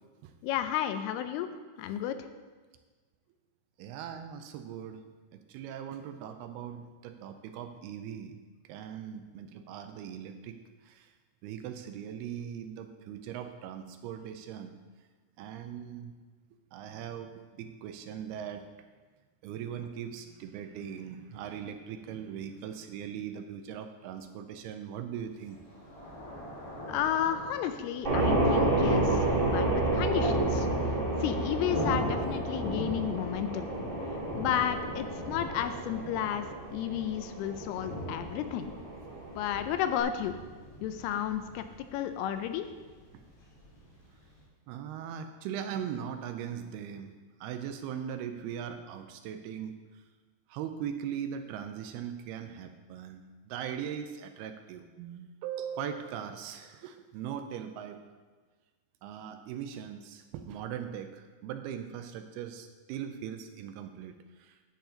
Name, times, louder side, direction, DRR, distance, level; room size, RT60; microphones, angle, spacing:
voice 1, 0.4-1.5 1.8-2.3 26.9-30.7 31.2-33.7 34.1-38.7 39.4-40.4 40.8-41.6 41.9-42.7, left 10 dB, 85° left, 9 dB, 2.5 m, -32 dB
voice 2, 3.8-5.0 5.3-8.4 8.7-11.1 11.4-14.7 15.4-16.1 16.7-18.7 19.4-25.6 28.9-29.0 35.7-35.8 44.7-47.1 47.4-49.8 50.5-58.0 59.0-64.6, right 8 dB, 80° right, 7 dB, 2.4 m, -40 dB
Thunder, 25.4-44.4, equal, 40° left, 3.1 m, -40 dB
sound 1, 28.0-40.0, right 2 dB, 25° right, 1.2 m, -31 dB
11.0 x 8.4 x 3.8 m, 1.4 s
omnidirectional pair, 4.8 m